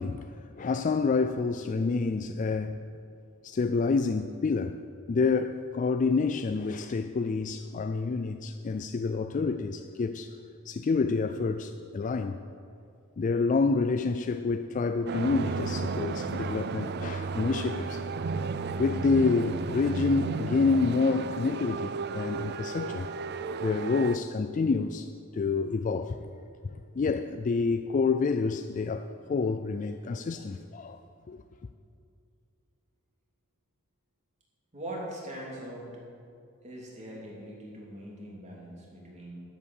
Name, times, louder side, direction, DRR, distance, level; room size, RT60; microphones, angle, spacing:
voice 1, 0.0-2.8 3.4-4.8 5.1-10.3 10.7-12.4 13.2-18.0 18.8-23.1 23.6-26.2 26.6-31.0 31.3-31.4, left 4 dB, 35° left, 0.3 m, -28 dB
sound 1, 15.1-24.2, right 4 dB, 50° right, 0.4 m, -33 dB
voice 2, 34.7-35.9 36.6-39.3, right 1 dB, 30° right, 3.0 m, -41 dB
12.5 x 8.5 x 6.5 m
head